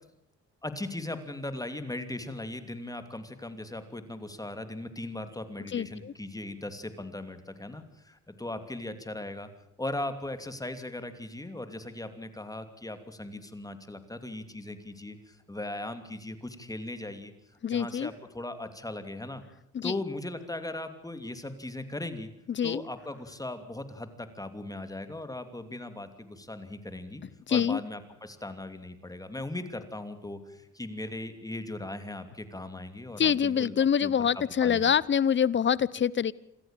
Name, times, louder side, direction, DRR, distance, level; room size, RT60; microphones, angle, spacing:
voice 1, 0.6-9.5 9.8-17.3 17.7-19.4 19.8-22.3 22.6-27.2 27.5-33.7 34.0-34.8, left 2 dB, 10° left, 9 dB, 2.9 m, -38 dB
voice 2, 5.7-6.1 17.6-18.1 19.7-19.9 22.5-22.8 27.5-27.8 33.2-36.3, left 8 dB, 40° left, 22 dB, 0.8 m, -25 dB
27.0 x 14.0 x 9.0 m, 0.77 s
cardioid pair, 90°, 30 cm